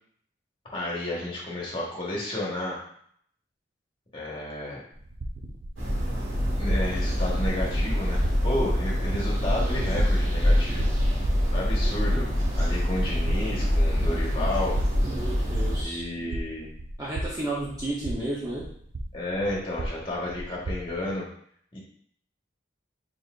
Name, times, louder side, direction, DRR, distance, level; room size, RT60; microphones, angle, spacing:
voice 1, 0.7-2.8 4.1-4.8 6.5-10.9 11.5-12.3 12.5-14.8 15.8-16.7 19.1-21.3 21.7-21.8, left 1 dB, 25° left, -5 dB, 1.3 m, -32 dB
sound 1, 4.9-21.1, right 1 dB, 70° right, 0.6 m, -36 dB
sound 2, 5.8-15.8, equal, 90° right, 1.5 m, -25 dB
voice 2, 11.8-12.2 15.1-16.0 17.0-18.7, right 2 dB, 20° right, -8 dB, 0.8 m, -33 dB
4.1 x 3.9 x 2.5 m, 0.63 s
head